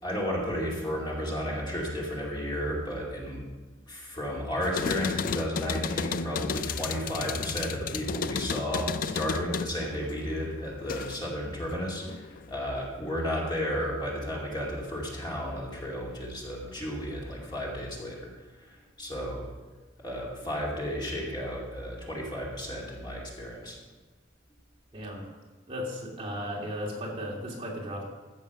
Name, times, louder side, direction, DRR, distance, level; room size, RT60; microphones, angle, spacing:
voice 1, 0.0-3.4 3.9-18.3 18.6-19.4 20.0-23.8, equal, 25° left, -3 dB, 2.5 m, -33 dB
sound 1, 4.6-11.3 11.7-12.5, left 6 dB, 50° left, 0.4 m, -33 dB
voice 2, 24.9-25.3 25.7-28.0, equal, 30° right, -3 dB, 2.3 m, -35 dB
14.5 x 6.4 x 5.9 m, 1.3 s
head